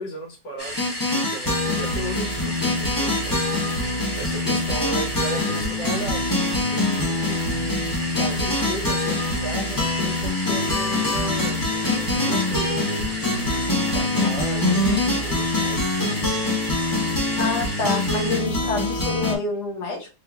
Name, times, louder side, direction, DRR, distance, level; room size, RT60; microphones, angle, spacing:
voice 1, 0.0-3.9 4.2-6.4 6.7-7.4 8.2-15.8, right 1 dB, 90° left, 0 dB, 1.9 m, -36 dB
sound 1, 0.6-18.4, equal, 15° left, 1.1 m, -33 dB
sound 2, 0.8-19.4, left 2 dB, 30° left, 0.3 m, -24 dB
voice 2, 17.3-20.1, left 3 dB, 70° left, -1 dB, 1.6 m, -27 dB
3.7 x 3.0 x 2.2 m, 0.32 s
omnidirectional pair, 1.8 m